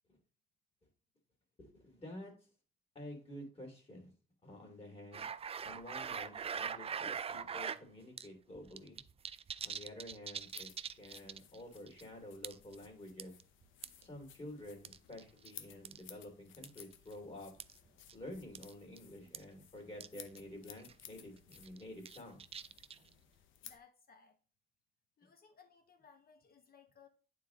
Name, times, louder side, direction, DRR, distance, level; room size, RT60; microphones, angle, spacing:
voice 1, 1.6-2.3 2.9-4.1 4.4-5.3 5.6-9.0 9.6-10.7 11.0-13.3 14.0-17.5 18.1-22.4, left 1 dB, 30° left, 2.6 m, -50 dB
sound 1, 5.1-7.8 8.2-8.3 8.6-11.6 11.9-12.0 12.4-12.8 13.2-14.0 14.8-15.5 15.9-16.0 16.6-16.8 17.6-17.7 18.1-18.2 18.6-18.7 19.0-19.1 19.3-19.4 20.0-20.1 20.4-20.5 20.8-21.0 21.5-23.1, right 7 dB, 30° right, 0.4 m, -42 dB
sound 2, 10.4-23.8, left 10 dB, 85° left, 0.7 m, -58 dB
voice 2, 23.3-24.4 25.2-27.1, left 6 dB, 50° left, 1.5 m, -63 dB
8.9 x 3.9 x 3.8 m
cardioid pair, 90°, 20 cm